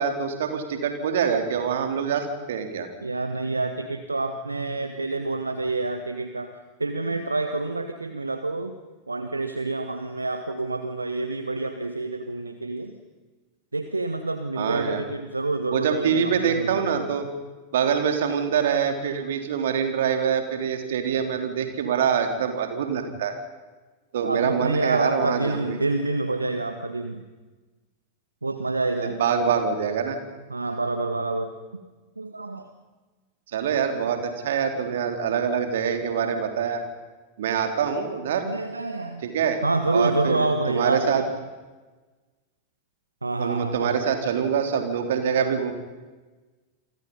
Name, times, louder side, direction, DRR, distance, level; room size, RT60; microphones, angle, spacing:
voice 1, 0.0-2.9 14.6-15.0 15.7-17.3 17.7-23.3 24.1-25.8 29.0-30.2 33.5-36.8 37.4-38.5 39.2-39.6 39.9-41.2 43.4-45.7, right 7 dB, 60° right, 6 dB, 3.6 m, -25 dB
voice 2, 3.0-6.5 6.8-8.8 9.1-12.9 13.7-17.1 21.0-21.2 24.2-27.2 28.4-29.5 30.5-31.5 32.2-32.7 38.4-39.2 39.6-41.3 43.2-43.9, right 2 dB, 80° right, 8 dB, 1.4 m, -28 dB
28.5 x 25.5 x 5.6 m, 1.2 s
figure-of-eight pair, 90°, 0 cm